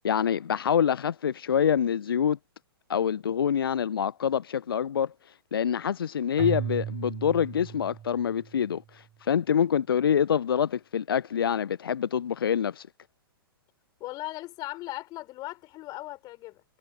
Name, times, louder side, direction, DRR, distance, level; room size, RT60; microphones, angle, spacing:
voice 1, 0.0-2.4 2.9-5.1 5.5-12.9, left 8 dB, 70° left, 0.5 m, -26 dB
Keyboard (musical), 6.4-8.6, right 10 dB, 20° right, 0.6 m, -35 dB
voice 2, 14.0-16.6, left 18 dB, 30° left, 4.0 m, -38 dB
figure-of-eight pair, 110°, 13 cm